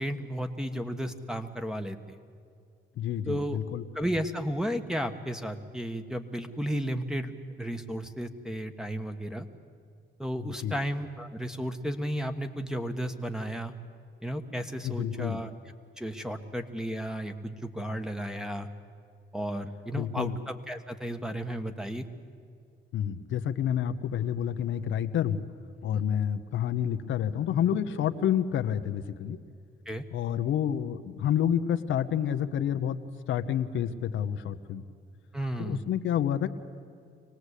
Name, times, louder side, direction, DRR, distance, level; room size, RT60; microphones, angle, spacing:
voice 1, 0.0-2.2 3.3-3.6 3.9-7.3 7.6-9.4 10.2-13.7 14.2-15.5 16.0-18.7 19.3-22.0 25.9-26.0 29.8-30.0 35.3-35.8, equal, 5° right, 7 dB, 1.4 m, -33 dB
voice 2, 3.0-3.8 10.6-10.7 14.8-15.4 19.9-20.4 22.9-25.4 25.8-29.4 30.1-33.0 33.3-34.8 35.6-36.5, left 9 dB, 75° left, 8 dB, 0.9 m, -29 dB
24.5 x 18.5 x 8.3 m, 2.3 s
cardioid pair, 90°, 20 cm